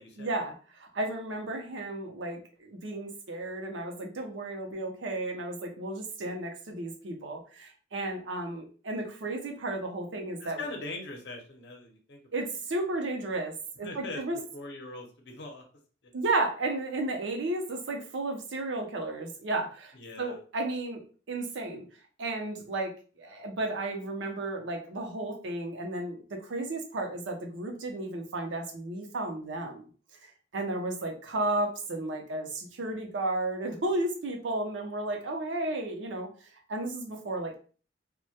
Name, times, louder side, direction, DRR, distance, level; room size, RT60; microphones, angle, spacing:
voice 1, 0.2-10.6 12.3-14.4 16.1-21.0 21.3-21.8 22.2-29.8 30.2-36.3 36.7-37.6, right 2 dB, 75° right, 3 dB, 0.6 m, -33 dB
voice 2, 10.4-12.4 13.8-14.2 14.5-15.6 19.9-20.4, left 2 dB, 65° left, 1 dB, 0.6 m, -41 dB
2.1 x 2.1 x 2.7 m, 0.39 s
head